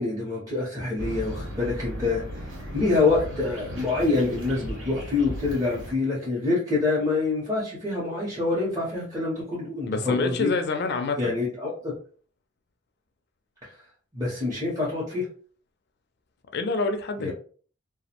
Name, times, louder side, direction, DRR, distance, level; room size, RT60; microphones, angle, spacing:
voice 1, 0.0-10.5 11.2-11.9 13.6-13.8 14.1-15.3 17.2-17.3, left 3 dB, 20° right, 0.6 m, -26 dB
sound 1, 1.0-6.0, equal, 75° right, 0.9 m, -36 dB
voice 2, 9.9-11.3 16.5-17.3, left 3 dB, 55° left, 0.4 m, -27 dB
2.4 x 2.0 x 2.8 m
head